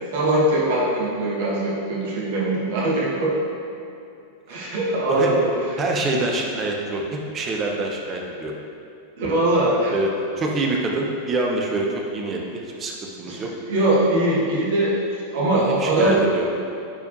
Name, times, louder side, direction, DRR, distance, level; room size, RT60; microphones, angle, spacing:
voice 1, 0.1-3.3 4.5-5.5 9.2-9.9 13.3-13.4 13.7-14.9 15.3-16.2, right 1 dB, 55° right, -5 dB, 1.5 m, -21 dB
voice 2, 5.8-8.5 9.9-10.1 10.4-13.5 15.5-16.4, right 2 dB, 25° right, 0 dB, 0.9 m, -26 dB
9.9 x 4.7 x 2.7 m, 2.6 s
figure-of-eight pair, 90°, 0 cm